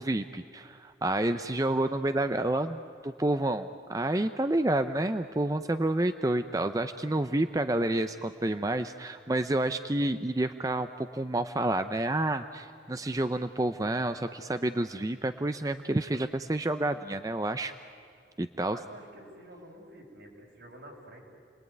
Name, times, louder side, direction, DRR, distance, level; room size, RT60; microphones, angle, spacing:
voice 1, 0.0-17.7 18.4-18.8, right 1 dB, 20° right, 9 dB, 0.6 m, -29 dB
voice 2, 18.7-21.2, right 1 dB, 70° right, 0 dB, 5.3 m, -49 dB
29.5 x 20.5 x 9.4 m, 2.4 s
head